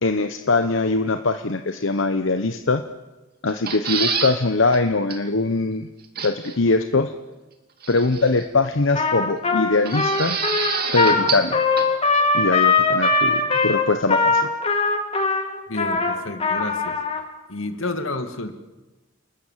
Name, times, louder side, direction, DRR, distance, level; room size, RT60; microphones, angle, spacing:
voice 1, 0.0-2.8 3.4-5.9 6.2-7.1 7.9-10.4 10.9-11.6 12.3-14.4, left 3 dB, 70° left, 7 dB, 1.0 m, -22 dB
sound 1, 3.5-4.4 4.7-4.8 5.1-5.2 6.2-6.6 7.8-8.4 9.9-11.5 11.8-11.9, right 6 dB, 50° right, 2.6 m, -27 dB
Trumpet, 8.9-17.2, left 3 dB, 30° left, 2.5 m, -21 dB
voice 2, 15.7-17.0 17.5-18.5, left 2 dB, 85° left, 7 dB, 2.1 m, -30 dB
29.0 x 19.5 x 7.5 m, 1.1 s
head